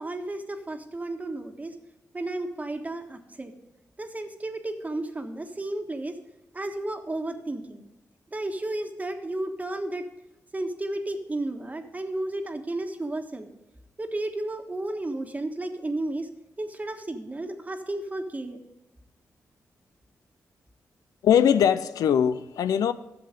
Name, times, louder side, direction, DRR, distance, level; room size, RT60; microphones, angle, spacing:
voice 1, 0.0-1.7 2.1-3.5 4.0-6.2 6.5-7.8 8.3-10.0 10.5-13.5 14.0-16.3 16.6-18.6, right 2 dB, 25° right, 1.4 m, -33 dB
voice 2, 21.2-22.9, left 8 dB, 90° left, 0.4 m, -21 dB
11.0 x 6.8 x 5.2 m
cardioid pair, 60°, 6 cm